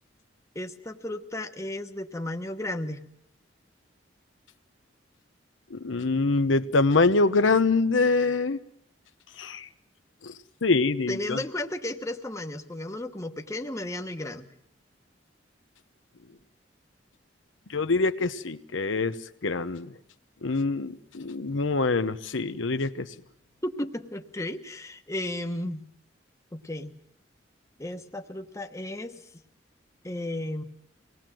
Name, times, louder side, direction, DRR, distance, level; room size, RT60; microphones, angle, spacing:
voice 1, 0.5-3.0 11.1-14.5 23.6-25.9 26.5-26.9 27.8-29.2 30.0-30.6, left 1 dB, 15° left, 5 dB, 1.1 m, -34 dB
voice 2, 5.7-8.6 9.4-9.7 10.2-10.3 10.6-11.4 17.7-19.1 19.4-19.9 20.4-23.1, left 3 dB, 90° left, 9 dB, 0.9 m, -24 dB
25.5 x 19.0 x 7.7 m, 0.75 s
head